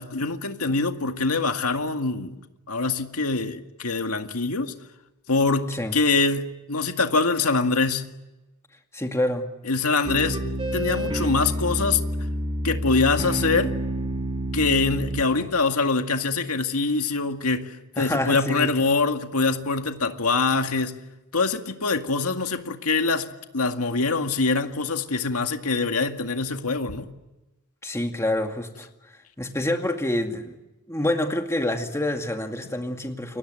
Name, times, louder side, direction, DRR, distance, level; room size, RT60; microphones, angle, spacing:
voice 1, 0.0-2.4 2.7-4.7 5.3-8.1 9.7-10.4 10.7-12.0 12.6-13.7 14.5-21.0 21.3-27.1, left 3 dB, 75° left, 2.1 m, -24 dB
voice 2, 8.9-9.5 15.4-15.5 18.0-18.9 27.8-28.9 29.4-30.5 30.9-33.4, left 1 dB, 15° left, 2.2 m, -27 dB
sound 1, 10.0-15.2, right 1 dB, 25° right, 4.4 m, -28 dB
30.0 x 23.5 x 7.7 m
head